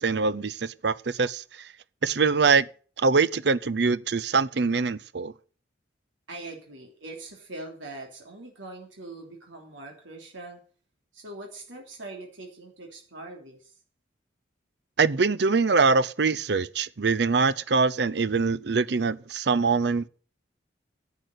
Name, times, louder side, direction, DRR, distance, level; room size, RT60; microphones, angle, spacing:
voice 1, 0.0-1.7 2.0-2.7 3.0-5.3 15.0-20.1, right 4 dB, 60° right, 0.6 m, -23 dB
voice 2, 6.3-10.6 11.1-13.8, right 2 dB, 90° right, 3.2 m, -42 dB
11.0 x 8.2 x 7.9 m
head